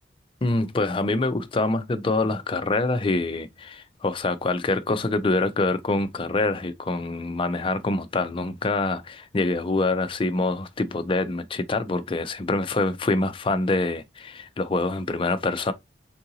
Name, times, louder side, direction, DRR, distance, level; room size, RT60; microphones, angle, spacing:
voice 1, 0.4-15.7, left 2 dB, 25° left, 0.4 m, -25 dB
3.8 x 2.5 x 2.7 m
head